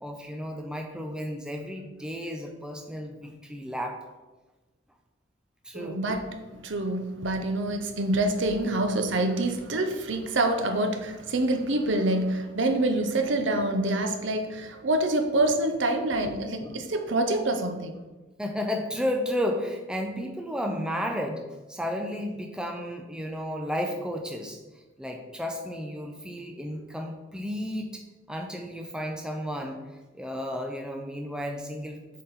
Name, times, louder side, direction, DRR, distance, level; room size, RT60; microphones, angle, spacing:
voice 1, 0.0-4.0 5.6-6.0 16.6-16.8 18.4-21.4 21.7-24.6 25.0-28.0 28.3-29.8 30.1-32.0, equal, 5° right, 0.5 m, -33 dB
voice 2, 5.7-18.0, right 2 dB, 70° right, 0.7 m, -26 dB
7.4 x 4.2 x 4.1 m
head